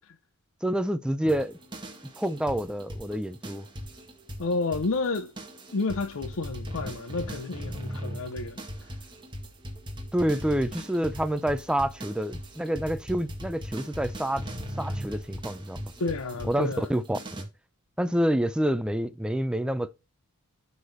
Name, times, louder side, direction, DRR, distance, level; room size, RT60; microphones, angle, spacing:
voice 1, 0.6-1.6 2.2-3.7 10.1-14.4 14.8-15.9 16.5-17.5 18.0-19.9, right 1 dB, 5° right, 0.4 m, -28 dB
sound 1, 1.2-17.4, equal, 20° right, 1.8 m, -39 dB
voice 2, 4.4-5.3 5.7-8.6 16.0-16.9, left 3 dB, 65° left, 0.6 m, -30 dB
11.5 x 4.1 x 3.2 m
head